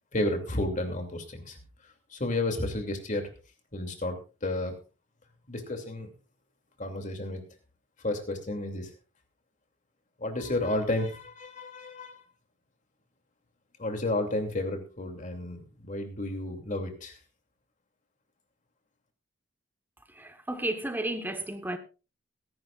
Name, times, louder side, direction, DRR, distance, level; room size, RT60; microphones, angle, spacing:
voice 1, 0.1-1.6 1.8-3.3 3.7-4.7 5.5-6.1 6.8-7.4 8.0-8.9 10.2-12.2 13.8-17.2, left 2 dB, 45° left, 2.7 m, -32 dB
voice 2, 20.2-21.8, right 1 dB, 10° right, 1.3 m, -32 dB
21.5 x 11.0 x 2.5 m
head